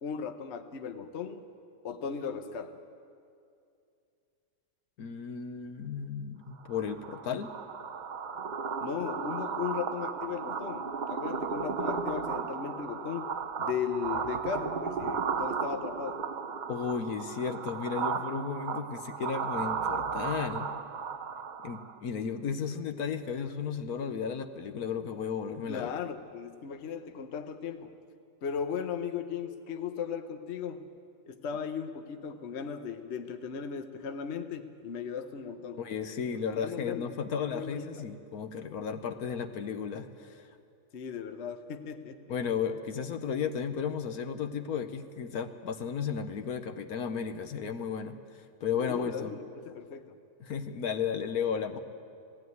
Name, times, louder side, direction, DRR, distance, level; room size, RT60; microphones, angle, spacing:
voice 1, 0.0-1.5 1.8-2.8 8.8-16.2 25.7-27.9 28.4-30.8 31.3-35.8 36.6-37.1 37.5-38.1 40.9-42.4 48.8-50.2, left 7 dB, 50° left, 8 dB, 1.0 m, -37 dB
voice 2, 5.0-7.5 16.7-20.7 21.6-25.9 35.8-40.5 42.3-48.2 48.6-49.4 50.4-51.8, left 6 dB, 65° left, 8 dB, 1.3 m, -34 dB
sound 1, 6.7-22.0, right 5 dB, 55° right, 0.5 m, -35 dB
18.5 x 15.5 x 9.4 m, 2.5 s
omnidirectional pair, 1.7 m